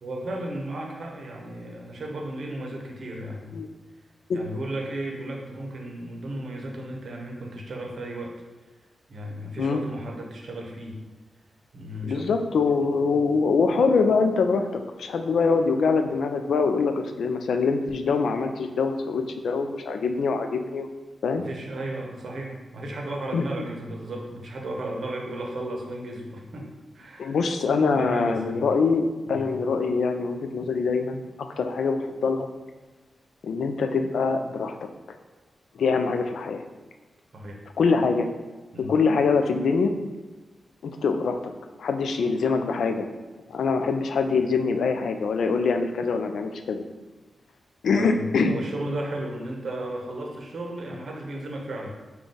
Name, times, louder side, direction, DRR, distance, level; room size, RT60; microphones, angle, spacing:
voice 1, 0.0-3.6 4.3-8.4 9.1-11.0 11.7-12.3 12.8-13.0 13.8-13.9 21.4-26.7 26.9-27.4 27.9-28.6 29.3-29.5 37.3-37.6 38.7-38.9 47.9-51.9, right 1 dB, 60° right, 0 dB, 0.7 m, -34 dB
voice 2, 12.0-20.9 21.2-21.4 23.3-23.7 27.2-32.5 33.4-34.9 35.7-36.6 37.8-38.3 38.9-39.9 40.8-41.5 41.8-43.1 43.5-46.8 47.8-48.6, left 4 dB, 80° left, 6 dB, 0.3 m, -24 dB
3.7 x 2.3 x 3.9 m, 1.2 s
wide cardioid pair, 120°, 0 cm